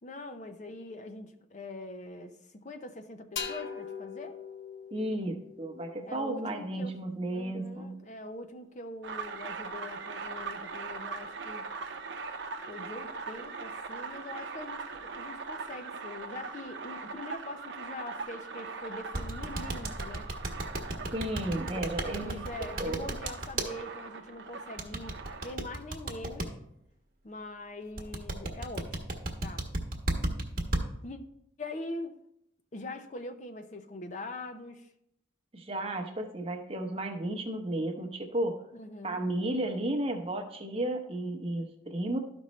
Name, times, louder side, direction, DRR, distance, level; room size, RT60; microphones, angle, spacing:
voice 1, 0.0-4.4 6.1-6.9 7.3-11.7 12.7-20.3 21.7-26.6 27.2-29.1 29.4-29.7 31.0-31.2 31.6-32.1 32.7-34.9 38.7-39.2, left 2 dB, 40° left, 7 dB, 0.6 m, -43 dB
sound 1, 3.4-7.0, left 6 dB, 70° left, 0.9 m, -42 dB
voice 2, 4.9-8.0 21.1-22.5 22.8-23.1 35.5-38.6 39.0-42.2, right 1 dB, 30° right, 4 dB, 0.9 m, -33 dB
sound 2, 9.0-25.5, right 4 dB, 70° right, 0.7 m, -41 dB
sound 3, 19.1-23.7 24.8-26.5 28.0-30.8, right 1 dB, 45° right, 1.2 m, -32 dB
13.0 x 5.3 x 3.1 m, 0.77 s
head